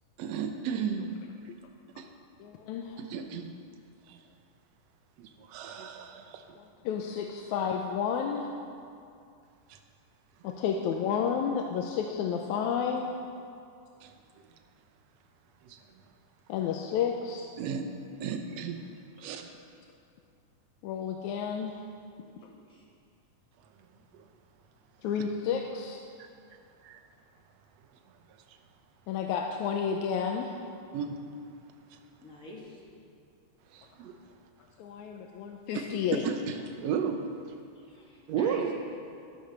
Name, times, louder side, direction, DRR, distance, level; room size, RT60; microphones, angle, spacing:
voice 1, 0.2-1.1 2.0-2.1 3.0-3.5 4.1-4.2 5.2-6.6 9.7-9.8 10.4-10.6 14.0-14.1 15.6-15.8 17.6-17.9 18.2-18.8 19.2-19.4 24.1-24.2 26.2-26.3 26.8-27.0 30.9-31.2 33.7-34.2 35.7-35.9 36.2-37.3 38.3-38.7, right 7 dB, 70° right, 6 dB, 1.8 m, -34 dB
voice 2, 2.4-3.0 6.6-8.5 10.4-13.0 16.5-17.5 20.8-21.8 25.0-26.0 29.1-30.5 34.8-36.3, left 7 dB, 80° left, 2 dB, 2.0 m, -31 dB
voice 3, 22.2-22.9 26.8-26.9 32.2-32.8 37.9-38.7, left 1 dB, 30° left, -4 dB, 1.8 m, -48 dB
11.5 x 11.0 x 6.7 m, 2.4 s
omnidirectional pair, 3.6 m